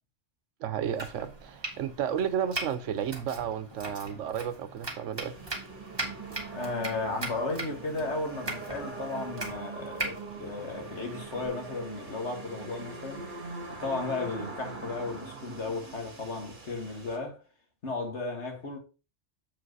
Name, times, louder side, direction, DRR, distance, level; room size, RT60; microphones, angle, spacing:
voice 1, 0.6-5.3, right 8 dB, 80° right, 1.0 m, -32 dB
Domestic sounds home sounds, 0.8-11.5, right 2 dB, 20° right, 1.8 m, -40 dB
sound 1, 5.2-17.2, right 3 dB, 40° right, 1.8 m, -42 dB
voice 2, 6.5-13.2 13.7-17.4 17.8-18.8, left 3 dB, 65° left, 2.2 m, -34 dB
7.4 x 5.0 x 4.7 m
omnidirectional pair, 1.3 m